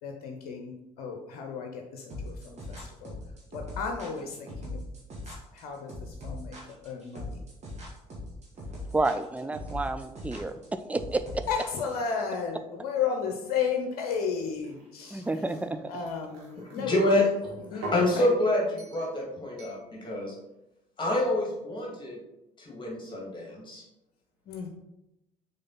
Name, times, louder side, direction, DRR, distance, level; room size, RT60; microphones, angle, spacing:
voice 1, 0.0-3.1 3.5-4.8 5.3-7.4 11.5-15.5 15.9-17.3 17.7-18.3 24.5-24.7, left 6 dB, 55° left, 3 dB, 0.8 m, -34 dB
sound 1, 2.1-12.1, left 1 dB, 35° right, 2.1 m, -40 dB
voice 2, 8.9-10.5 10.9-11.4 15.1-15.8, right 2 dB, 5° right, 10 dB, 0.4 m, -30 dB
sound 2, 14.5-16.8 17.4-18.1 18.8-19.1 19.6-19.8, right 1 dB, 60° right, 1.8 m, -43 dB
voice 3, 16.8-17.2 17.9-18.6 18.9-20.3 21.0-22.2 22.6-23.8, left 1 dB, 25° left, -2 dB, 2.2 m, -27 dB
6.5 x 4.2 x 4.0 m, 0.91 s
figure-of-eight pair, 50°, 19 cm